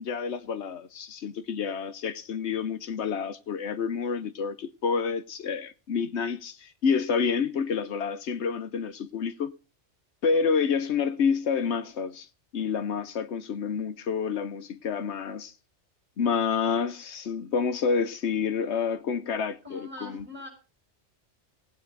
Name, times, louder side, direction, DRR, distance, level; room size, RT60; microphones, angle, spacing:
voice 1, 0.0-9.6 10.2-12.3 12.5-15.5 16.2-20.3, left 6 dB, 75° left, 1.2 m, -28 dB
voice 2, 19.6-20.5, left 2 dB, 10° right, 6.4 m, -42 dB
18.0 x 8.9 x 3.9 m
omnidirectional pair, 1.2 m